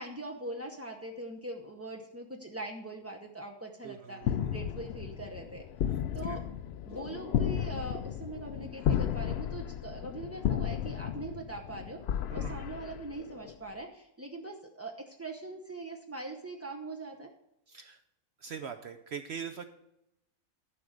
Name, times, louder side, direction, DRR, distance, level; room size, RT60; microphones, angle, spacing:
voice 1, 0.0-5.6 6.1-6.4 6.9-12.0 12.3-17.3, right 2 dB, 25° right, 1 dB, 0.3 m, -42 dB
voice 2, 3.8-4.7 5.9-6.4 8.7-9.0 12.3-12.6 17.7-18.0 18.4-19.6, right 7 dB, 65° right, 8 dB, 0.7 m, -43 dB
sound 1, 4.2-13.5, left 9 dB, 65° left, 0.6 m, -33 dB
11.5 x 4.9 x 6.4 m, 0.84 s
omnidirectional pair, 1.5 m